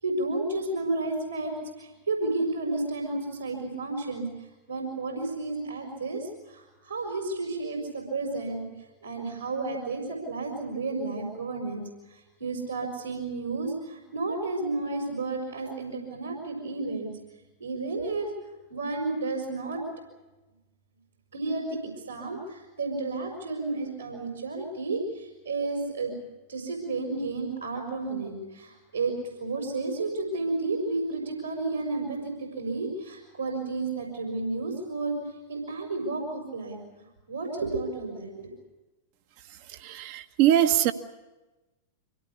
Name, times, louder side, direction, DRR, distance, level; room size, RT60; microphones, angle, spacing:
voice 1, 0.0-4.3 4.7-8.6 9.0-17.1 17.6-18.3 18.7-19.8 21.3-21.8 22.1-26.1 26.5-35.2 35.5-36.8 37.3-38.5, right 3 dB, 80° right, -1 dB, 5.5 m, -32 dB
voice 2, 39.8-40.9, right 11 dB, 45° right, 8 dB, 1.3 m, -22 dB
25.0 x 17.5 x 8.6 m, 1.1 s
figure-of-eight pair, 90°, 0 cm